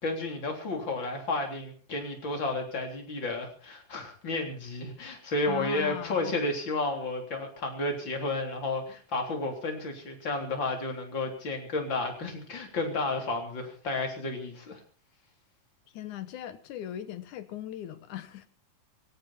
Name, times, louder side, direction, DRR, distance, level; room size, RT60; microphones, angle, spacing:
voice 1, 0.0-14.8, left 2 dB, 35° left, 4.1 m, -32 dB
voice 2, 5.5-6.4 15.9-18.5, left 11 dB, 70° left, 2.5 m, -39 dB
19.5 x 17.0 x 4.4 m
omnidirectional pair, 3.8 m